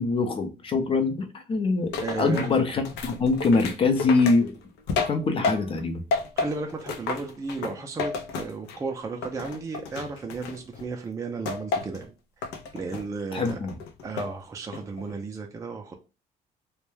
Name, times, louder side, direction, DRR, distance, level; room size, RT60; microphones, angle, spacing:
voice 1, 0.0-4.5 5.1-6.0 13.3-13.8, left 3 dB, 30° left, 0.6 m, -24 dB
sound 1, 1.9-5.8 6.1-8.9 9.2-10.8 11.4-12.0 12.4-13.1 13.4-14.3 14.7-15.1, left 4 dB, 80° left, 0.5 m, -32 dB
voice 2, 2.0-2.5 6.4-12.1 12.7-13.6 14.0-15.9, right 4 dB, 20° right, 0.4 m, -34 dB
2.2 x 2.1 x 3.1 m
cardioid pair, 110°, 17 cm